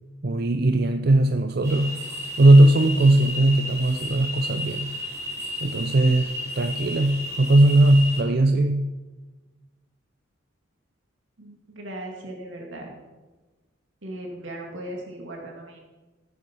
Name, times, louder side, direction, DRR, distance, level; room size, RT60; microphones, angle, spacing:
voice 1, 0.2-2.0 2.4-4.9 5.6-8.9, right 1 dB, 50° right, 8 dB, 0.5 m, -19 dB
sound 1, 1.6-8.2, left 1 dB, 15° right, 4.9 m, -33 dB
voice 2, 11.4-12.9 14.0-15.8, right 1 dB, 75° right, 0 dB, 2.4 m, -37 dB
15.0 x 8.5 x 5.6 m, 1.2 s
head